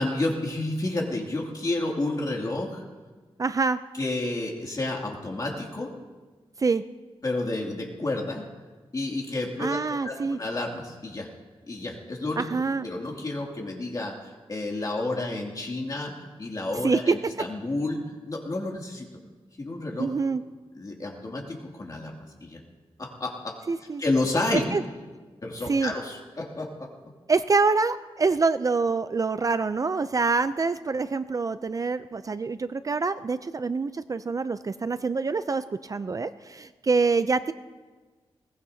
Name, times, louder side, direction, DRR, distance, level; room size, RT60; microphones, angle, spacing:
voice 1, 0.0-2.8 3.9-5.9 7.2-8.4 8.9-11.3 11.7-12.4 12.8-18.0 18.3-19.1 19.6-20.1 20.8-22.1 22.4-22.6 23.0-23.6 24.0-24.6 25.4-26.9, left 2 dB, 35° left, -1 dB, 2.5 m, -30 dB
voice 2, 3.4-3.8 6.6-6.8 9.6-10.4 12.4-12.9 16.8-17.2 20.0-20.4 23.7-24.0 24.5-24.8 25.7-25.9 27.3-37.5, right 4 dB, 35° right, 12 dB, 0.4 m, -25 dB
21.0 x 18.5 x 2.8 m, 1.3 s
wide cardioid pair, 145°, 10 cm